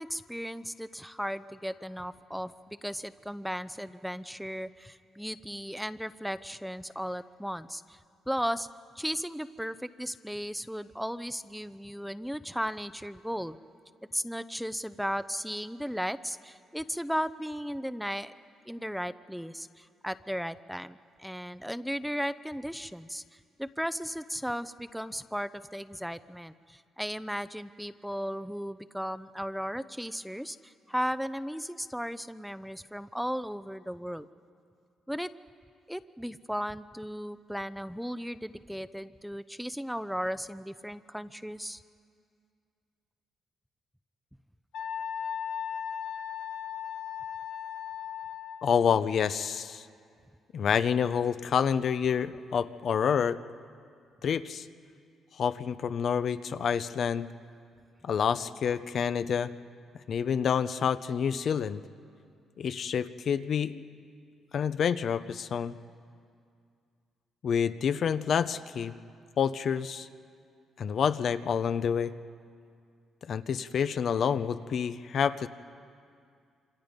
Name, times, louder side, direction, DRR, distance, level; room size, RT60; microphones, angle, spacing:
voice 1, 0.0-8.0 8.3-8.7 9.0-13.6 14.1-18.3 18.7-23.2 23.6-34.3 35.1-35.3 35.9-41.8, equal, ahead, 14 dB, 0.6 m, -36 dB
Wind instrument woodwind instrument, 44.7-48.8, left 8 dB, 90° left, 1.7 m, -37 dB
voice 2, 48.6-49.9 50.5-53.4 54.2-54.7 55.4-57.3 58.0-59.5 60.1-61.8 62.6-63.8 64.5-65.7 67.4-68.9 69.4-70.1 70.8-72.1 73.3-75.5, left 7 dB, 60° left, 12 dB, 0.8 m, -28 dB
26.5 x 26.5 x 5.3 m, 2.3 s
cardioid pair, 90°, 0 cm